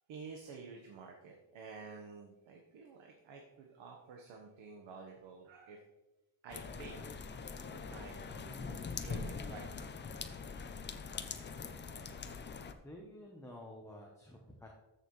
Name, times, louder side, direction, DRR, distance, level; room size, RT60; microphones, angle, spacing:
voice 1, 0.1-5.8 6.4-7.1 7.7-9.7, right 4 dB, 80° right, 1 dB, 1.3 m, -51 dB
sound 1, 6.5-12.7, left 5 dB, 25° left, 0.5 m, -43 dB
voice 2, 12.8-14.7, left 1 dB, 5° left, -1 dB, 0.9 m, -51 dB
13.5 x 6.5 x 3.2 m, 1.1 s
cardioid pair, 165°, 46 cm